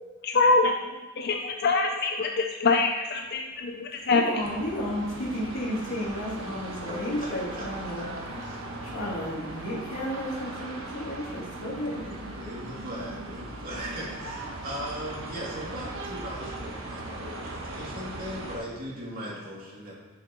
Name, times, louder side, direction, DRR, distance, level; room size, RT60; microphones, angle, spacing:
voice 1, 0.2-4.4, left 3 dB, 50° left, 3 dB, 0.5 m, -25 dB
voice 2, 4.0-12.2, equal, 75° left, -6 dB, 2.8 m, -33 dB
sound 1, 4.4-18.6, right 2 dB, 75° right, 1.2 m, -39 dB
voice 3, 8.0-8.8 12.3-19.9, equal, 45° right, -6 dB, 2.7 m, -39 dB
11.5 x 6.6 x 3.0 m, 1.3 s
head